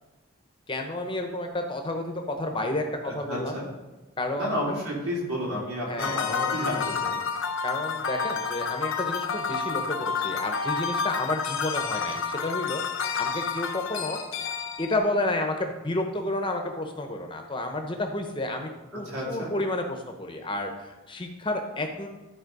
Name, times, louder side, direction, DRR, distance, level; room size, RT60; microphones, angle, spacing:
voice 1, 0.7-3.6 4.2-4.5 5.9-6.2 7.6-14.2 14.8-22.1, left 1 dB, 20° left, 4 dB, 0.9 m, -31 dB
voice 2, 3.0-3.7 4.4-7.2 18.9-19.5, equal, 90° right, -4 dB, 3.4 m, -31 dB
sound 1, 6.0-15.0, left 6 dB, 60° left, 0.7 m, -30 dB
12.5 x 4.3 x 5.3 m, 1.1 s
head